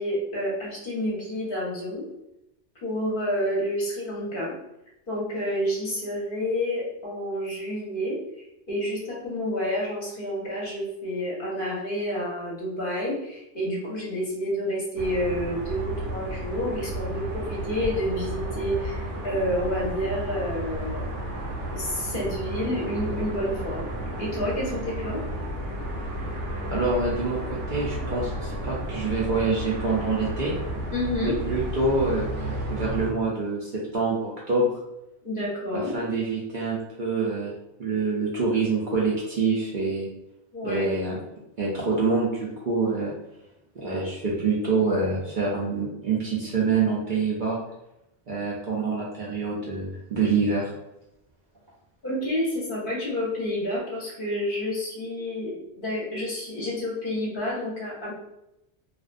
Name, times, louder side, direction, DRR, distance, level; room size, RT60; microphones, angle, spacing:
voice 1, 0.0-2.0 2.8-4.5 5.1-8.2 8.7-19.0 19.2-21.1 21.7-23.8 24.2-25.2 30.9-31.3 35.2-36.0 40.5-40.9 52.0-58.1, equal, 55° left, -5 dB, 0.8 m, -29 dB
sound 1, 15.0-33.1, right 1 dB, 90° right, 0.9 m, -32 dB
voice 2, 26.6-30.5 31.2-34.8 35.7-37.5 37.8-40.1 40.6-41.2 41.6-43.1 43.8-47.6 48.3-50.7, right 3 dB, 55° right, -5 dB, 0.6 m, -26 dB
2.5 x 2.1 x 2.4 m, 0.86 s
omnidirectional pair, 1.2 m